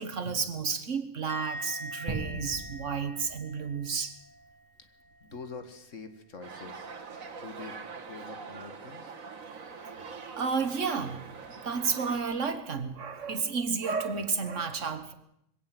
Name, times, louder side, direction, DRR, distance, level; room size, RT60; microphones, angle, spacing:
voice 1, 0.0-4.2 10.4-11.3 11.6-15.1, right 5 dB, 65° right, 1.9 m, -31 dB
Musical instrument, 1.3-4.7 4.9-5.4, equal, 10° left, 2.2 m, -43 dB
sound 1, 2.1-4.7, right 2 dB, 20° right, 2.2 m, -41 dB
voice 2, 5.2-6.9 7.4-9.1 11.9-12.0, left 4 dB, 65° left, 2.1 m, -45 dB
sound 2, 6.4-12.2, right 5 dB, 80° right, 2.1 m, -43 dB
21.5 x 17.0 x 7.8 m
omnidirectional pair, 1.4 m